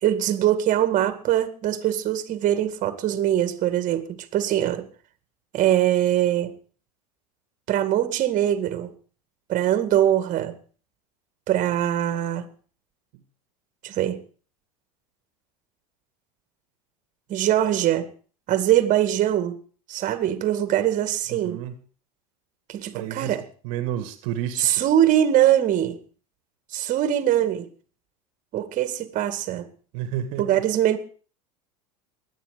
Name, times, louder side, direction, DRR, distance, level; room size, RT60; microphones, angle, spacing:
voice 1, 0.0-4.9 5.5-6.5 7.7-8.9 9.5-10.6 11.5-12.5 13.8-14.2 17.3-18.1 18.5-19.6 19.9-21.6 22.7-23.4 24.6-26.0 26.7-27.7 28.5-29.7 30.4-31.0, right 11 dB, 45° right, 2.0 m, -22 dB
voice 2, 21.3-21.7 22.9-23.4 23.6-24.8 29.9-30.6, right 11 dB, 65° right, 1.8 m, -31 dB
22.5 x 9.1 x 5.1 m
hypercardioid pair, 90°, 19 cm